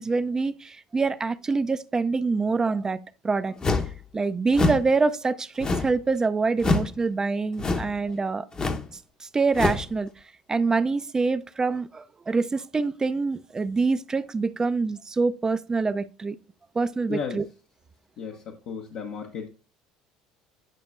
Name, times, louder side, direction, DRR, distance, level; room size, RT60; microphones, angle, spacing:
voice 1, 0.0-3.0 3.2-3.6 4.1-8.5 9.2-10.1 10.5-16.4 16.8-17.5, right 4 dB, 25° right, 0.4 m, -25 dB
sound 1, 3.6-4.0 4.5-4.9 5.6-6.0 6.6-6.9 7.6-8.0 8.5-8.9 9.5-9.9, left 3 dB, 30° left, 0.9 m, -25 dB
voice 2, 17.1-17.4 18.2-19.5, left 6 dB, 65° left, 1.0 m, -34 dB
9.0 x 5.7 x 2.4 m
hypercardioid pair, 75°, 3 cm